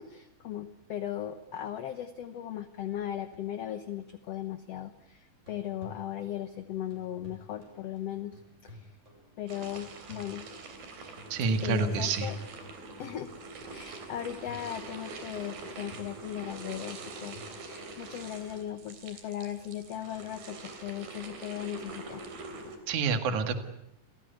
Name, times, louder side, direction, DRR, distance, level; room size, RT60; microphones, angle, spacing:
voice 1, 0.0-9.0 9.4-10.5 11.6-12.4 13.0-13.3 13.7-22.3, left 11 dB, 65° left, 10 dB, 1.6 m, -38 dB
sound 1, 5.3-18.7 22.2-22.3, left 1 dB, 20° right, 7.2 m, -54 dB
sound 2, 9.5-22.8, right 3 dB, 80° right, 5.0 m, -44 dB
voice 2, 11.3-12.3 22.9-23.5, right 4 dB, 60° right, 9 dB, 3.2 m, -28 dB
28.5 x 17.5 x 9.3 m, 0.82 s
omnidirectional pair, 4.1 m